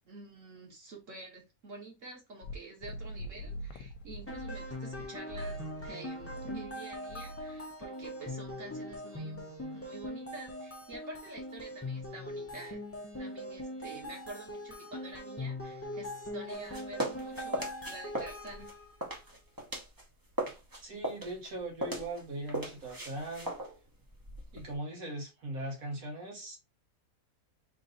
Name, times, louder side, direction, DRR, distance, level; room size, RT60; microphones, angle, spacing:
voice 1, 0.0-9.5 9.7-12.8 13.2-18.7, right 2 dB, 60° right, 1.7 m, -48 dB
sound 1, 2.4-5.0 5.3-5.9 6.2-6.7 7.1-7.6, equal, 75° left, 1.1 m, -43 dB
sound 2, 4.3-19.0, left 1 dB, 15° left, 0.4 m, -41 dB
sound 3, 16.5-20.0 20.3-24.7, right 1 dB, 20° right, 0.7 m, -38 dB
voice 2, 20.8-23.5 24.5-26.6, right 1 dB, 75° right, 1.8 m, -39 dB
3.8 x 2.7 x 3.8 m
omnidirectional pair, 1.5 m